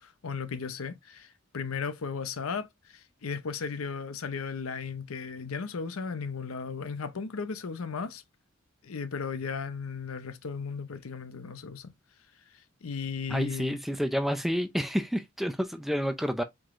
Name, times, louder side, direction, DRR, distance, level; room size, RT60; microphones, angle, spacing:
voice 1, 0.0-8.2 8.8-11.9 12.8-13.8, left 5 dB, 85° left, 0.7 m, -36 dB
voice 2, 13.3-16.4, equal, ahead, 0.4 m, -29 dB
4.8 x 3.8 x 2.5 m
head